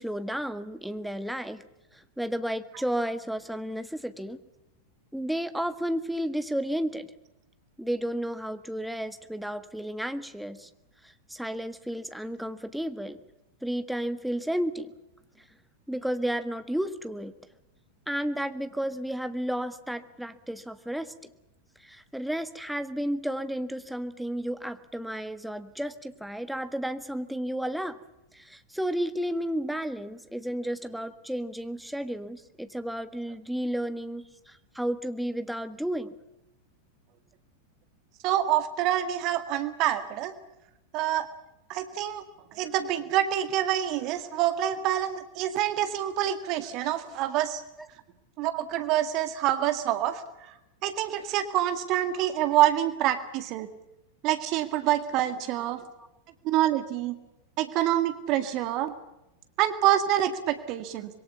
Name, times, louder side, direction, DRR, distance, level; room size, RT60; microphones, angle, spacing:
voice 1, 0.0-1.7 1.9-4.4 5.1-7.1 7.8-10.7 11.0-13.2 13.6-14.9 15.9-17.3 18.1-21.1 21.8-28.0 28.3-36.1 47.8-47.9, equal, ahead, 9 dB, 1.6 m, -32 dB
voice 2, 38.2-40.3 40.9-41.3 41.7-42.2 42.5-47.6 48.4-50.5 50.8-53.7 54.2-55.8 56.4-57.2 57.6-58.9 59.6-61.1, right 12 dB, 40° right, 10 dB, 2.0 m, -26 dB
26.0 x 22.5 x 7.0 m, 0.91 s
figure-of-eight pair, 90°, 0 cm